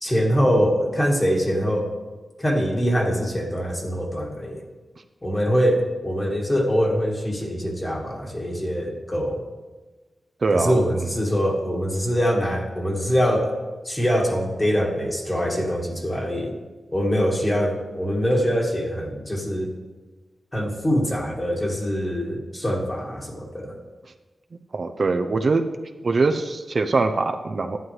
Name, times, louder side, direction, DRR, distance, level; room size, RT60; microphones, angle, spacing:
voice 1, 0.0-1.9 2.4-4.6 5.2-9.4 10.5-13.5 13.8-16.5 16.9-19.7 20.5-23.8, equal, 20° left, 0 dB, 1.7 m, -23 dB
voice 2, 10.4-10.8 24.7-25.7 26.0-27.8, right 3 dB, 45° right, 6 dB, 0.5 m, -22 dB
11.0 x 9.4 x 3.2 m, 1.3 s
wide cardioid pair, 120°, 0 cm